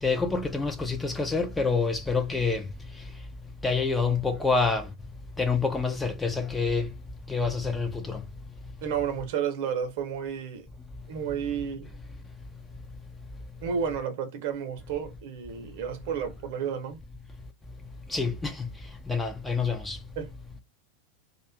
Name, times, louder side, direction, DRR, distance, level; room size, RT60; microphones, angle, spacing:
voice 1, 0.0-2.7 3.6-4.9 5.4-6.9 7.3-8.2 18.1-18.7 19.1-20.0, left 4 dB, 10° left, 0.4 m, -27 dB
voice 2, 8.8-10.7 11.1-11.9 13.6-17.0 20.2-20.3, right 7 dB, 50° right, 0.8 m, -31 dB
2.4 x 2.2 x 3.4 m
figure-of-eight pair, 90°, 0 cm